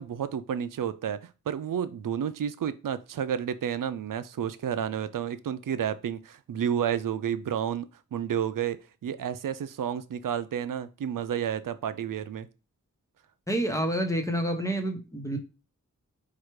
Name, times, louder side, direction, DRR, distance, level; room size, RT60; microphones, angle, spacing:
voice 1, 0.0-12.5, right 9 dB, 80° right, 13 dB, 0.5 m, -31 dB
voice 2, 13.5-15.4, right 1 dB, 10° left, 5 dB, 1.0 m, -28 dB
4.6 x 2.4 x 4.6 m, 0.32 s
wide cardioid pair, 65°, 32 cm